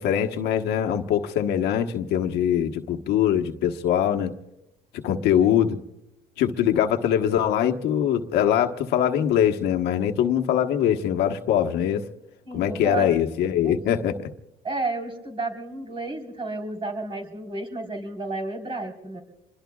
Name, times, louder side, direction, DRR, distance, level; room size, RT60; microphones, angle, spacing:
voice 1, 0.0-4.3 4.9-5.8 6.4-12.0 12.5-14.2, left 9 dB, 85° left, 5 dB, 1.3 m, -22 dB
voice 2, 12.5-13.2 13.6-13.8 14.6-19.2, right 2 dB, 30° right, 1 dB, 4.2 m, -32 dB
27.5 x 22.0 x 2.4 m, 0.89 s
cardioid pair, 110°, 17 cm